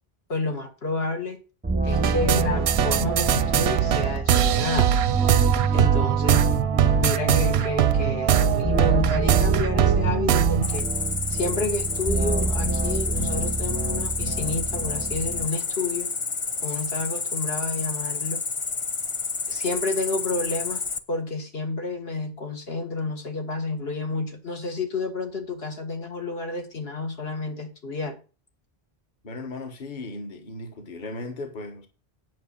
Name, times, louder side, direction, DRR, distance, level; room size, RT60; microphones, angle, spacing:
voice 1, 0.3-1.4 1.8-4.9 5.7-6.5 7.0-10.9 11.3-16.1 16.6-18.4 19.5-20.8 21.1-28.2, left 3 dB, 75° left, 2.0 m, -30 dB
sound 1, 1.6-15.5, right 4 dB, 15° right, 0.4 m, -27 dB
sound 2, 1.9-10.8, right 9 dB, 85° right, 0.9 m, -22 dB
Cricket, 10.6-21.0, left 4 dB, 35° left, 0.7 m, -30 dB
voice 2, 29.2-31.9, left 2 dB, 50° left, 1.4 m, -36 dB
9.4 x 5.3 x 7.1 m
omnidirectional pair, 1.0 m